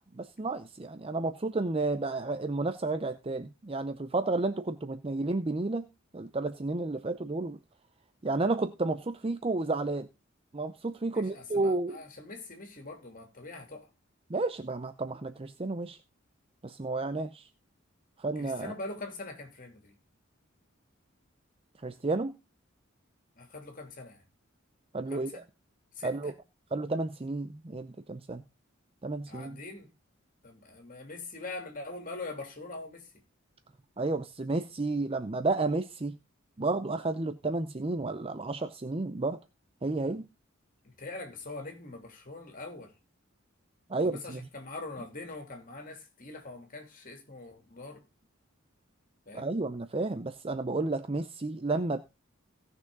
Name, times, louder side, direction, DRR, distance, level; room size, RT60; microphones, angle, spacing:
voice 1, 0.1-5.9 6.1-7.6 8.2-10.1 10.5-12.0 14.3-16.0 16.6-17.5 18.2-18.7 21.8-22.4 24.9-25.4 26.0-26.3 26.7-28.4 29.0-29.6 34.0-36.2 36.6-39.4 39.8-40.3 43.9-44.5 49.3-52.0, right 3 dB, 25° right, 0.6 m, -31 dB
voice 2, 11.1-13.8 18.4-19.9 23.4-24.2 25.1-25.4 26.0-26.3 29.3-29.9 30.4-33.0 40.8-42.9 44.0-48.0 49.3-49.5, left 2 dB, 40° left, 3.1 m, -43 dB
17.0 x 6.2 x 3.8 m
head